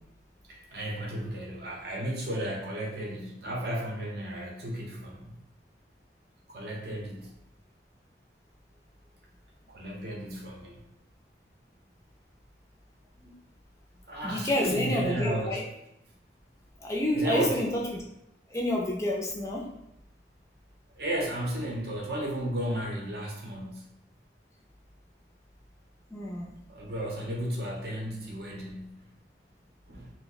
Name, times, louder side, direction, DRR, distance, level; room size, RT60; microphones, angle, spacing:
voice 1, 0.5-5.3 6.5-7.3 9.7-10.8 14.1-15.6 17.1-17.6 21.0-23.8 26.7-29.0 29.9-30.1, right 1 dB, 55° right, -1 dB, 0.7 m, -33 dB
voice 2, 14.2-15.6 16.8-17.9 18.5-19.6 26.1-26.5, left 1 dB, 15° left, -2 dB, 0.4 m, -29 dB
2.7 x 2.0 x 3.9 m, 0.85 s
head